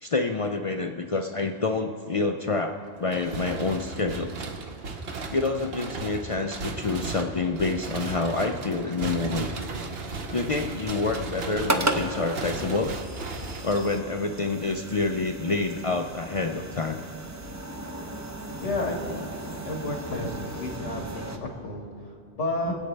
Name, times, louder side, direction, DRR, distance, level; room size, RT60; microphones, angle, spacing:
voice 1, 0.0-4.4 5.3-9.5 10.3-12.9 13.6-17.0, left 3 dB, 55° left, 5 dB, 0.3 m, -27 dB
sound 1, 3.1-14.3, right 3 dB, 60° right, 1.1 m, -36 dB
sound 2, 9.6-21.4, right 2 dB, 20° right, 0.5 m, -35 dB
voice 2, 18.6-19.4 19.6-22.7, left 2 dB, 90° left, 1 dB, 2.0 m, -32 dB
24.0 x 8.2 x 3.3 m, 2.4 s
omnidirectional pair, 1.2 m